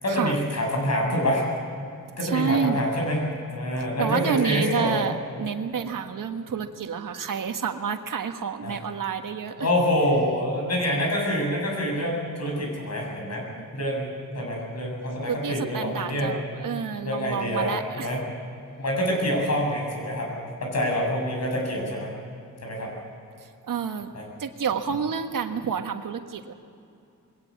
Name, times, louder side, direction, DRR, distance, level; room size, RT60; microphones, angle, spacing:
voice 1, 0.0-1.4 2.2-5.1 8.6-8.8 9.6-13.4 13.7-16.3 17.0-18.2 18.8-20.3 20.6-22.1 22.6-22.9 24.1-24.2, equal, 55° left, 0 dB, 7.7 m, -26 dB
voice 2, 2.2-2.8 4.0-9.7 13.5-13.6 15.2-18.1 23.7-24.1 24.4-26.5, right 6 dB, 80° right, 6 dB, 1.5 m, -29 dB
22.0 x 17.5 x 8.5 m, 2.5 s
wide cardioid pair, 125°, 32 cm